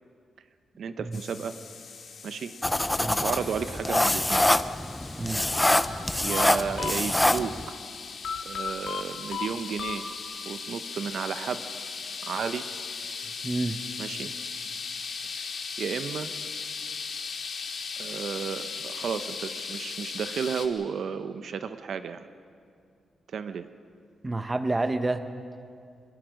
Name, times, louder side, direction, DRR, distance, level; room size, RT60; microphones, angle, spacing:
voice 1, 0.8-1.6 2.2-2.5 3.2-4.5 6.2-7.6 8.4-10.1 10.4-11.7 12.2-12.7 14.0-14.3 15.3-15.4 15.8-16.3 18.0-22.3 23.3-23.7, right 6 dB, 60° right, 10 dB, 0.8 m, -33 dB
sound 1, 1.1-20.7, left 5 dB, 50° left, 2.0 m, -38 dB
sound 2, 2.6-7.7, left 1 dB, 10° left, 0.4 m, -25 dB
sound 3, 5.7-7.5 8.2-10.5, left 6 dB, 70° left, 1.8 m, -35 dB
voice 2, 13.4-13.8 24.2-25.3, right 2 dB, 15° right, 9 dB, 0.8 m, -29 dB
24.5 x 20.5 x 6.4 m, 2.3 s
wide cardioid pair, 170°, 0 cm